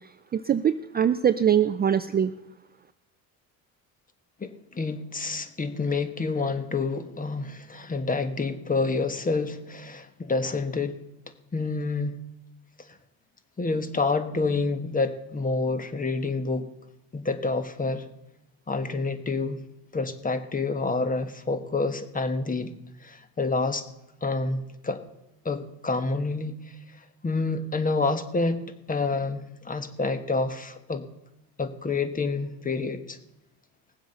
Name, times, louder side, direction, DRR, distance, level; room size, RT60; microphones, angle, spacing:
voice 1, 0.3-2.3, right 9 dB, 25° right, 12 dB, 0.4 m, -22 dB
voice 2, 4.4-11.0 11.5-12.2 13.6-16.7 17.1-18.0 18.7-19.6 19.9-22.7 23.0-23.8 24.2-25.0 25.4-26.6 27.2-31.0 31.6-33.2, left 3 dB, 20° left, 10 dB, 1.4 m, -28 dB
18.5 x 7.7 x 6.6 m, 0.95 s
cardioid pair, 105°, 39 cm